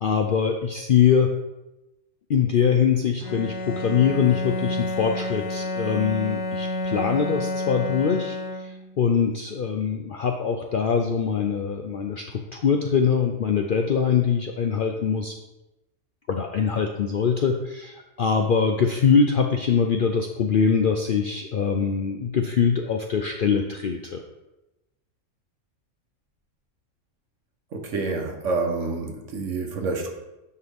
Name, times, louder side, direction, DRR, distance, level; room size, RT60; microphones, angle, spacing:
voice 1, 0.0-1.3 2.3-15.3 16.3-24.2, left 6 dB, 70° left, 4 dB, 0.5 m, -23 dB
Bowed string instrument, 3.2-9.0, left 2 dB, 90° left, 2.2 m, -30 dB
voice 2, 27.7-30.1, right 3 dB, 60° right, 3 dB, 1.2 m, -28 dB
9.7 x 4.5 x 3.5 m, 0.98 s
omnidirectional pair, 1.5 m